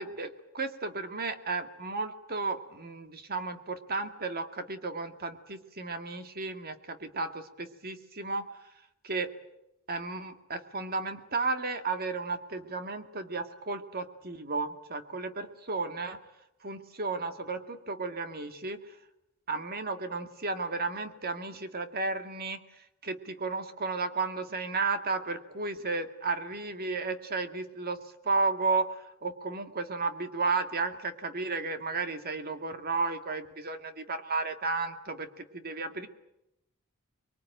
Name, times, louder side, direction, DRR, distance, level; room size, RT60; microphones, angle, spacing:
voice 1, 0.0-8.5 9.0-9.3 9.9-16.2 16.6-18.8 19.5-22.6 23.0-28.0 28.2-36.1, right 3 dB, 45° right, 8 dB, 2.0 m, -33 dB
24.5 x 22.5 x 9.1 m, 0.85 s
head